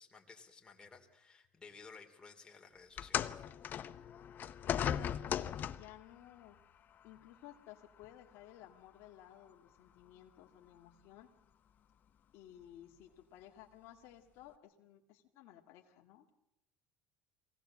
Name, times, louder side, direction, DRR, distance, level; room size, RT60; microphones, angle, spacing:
voice 1, 0.0-3.5, left 4 dB, 20° left, 2 dB, 3.1 m, -56 dB
sound 1, 3.0-6.0 7.0-7.2 8.0-8.1, left 9 dB, 40° left, 0.9 m, -37 dB
voice 2, 4.6-6.6 7.0-11.3 12.3-16.3, left 12 dB, 65° left, 2 dB, 2.0 m, -57 dB
23.5 x 17.5 x 7.5 m, 0.86 s
supercardioid pair, 110°, 5 cm